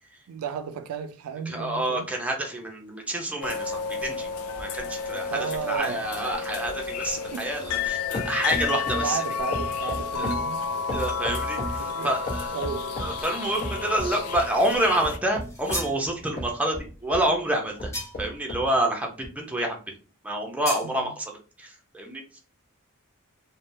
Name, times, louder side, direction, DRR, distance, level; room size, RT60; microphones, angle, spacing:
voice 1, 0.3-2.1 5.3-6.0 7.2-7.5 8.9-10.7 11.8-12.1 12.5-12.9 20.8-21.1, right 6 dB, 75° right, 0.3 m, -34 dB
voice 2, 1.5-4.3 4.6-9.2 10.2-10.3 10.9-12.5 13.0-17.9 18.2-19.8 20.2-21.3 21.6-22.4, right 1 dB, 5° right, 0.5 m, -28 dB
sound 1, 3.4-15.2, left 5 dB, 85° left, 0.4 m, -31 dB
sound 2, 4.5-7.9 8.1-9.2 9.5-11.8 12.3-13.2 13.6-14.5 15.0-17.3 17.8-18.7 19.2-19.3, left 1 dB, 40° left, 0.9 m, -35 dB
sound 3, 15.4-16.0 17.9-18.4 20.6-20.9, left 1 dB, 15° left, 0.8 m, -33 dB
3.3 x 2.1 x 2.6 m
head